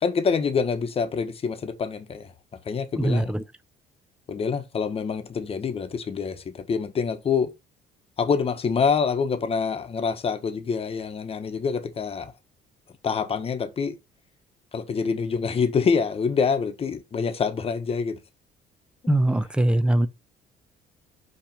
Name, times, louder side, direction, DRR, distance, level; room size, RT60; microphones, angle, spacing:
voice 1, 0.0-2.3 2.6-3.3 4.3-7.5 8.2-12.3 13.0-14.0 14.7-18.2, left 5 dB, 35° left, 1.2 m, -26 dB
voice 2, 3.0-3.4 19.1-20.1, right 1 dB, 5° right, 0.7 m, -21 dB
5.8 x 3.3 x 5.6 m
cardioid pair, 110°, 17 cm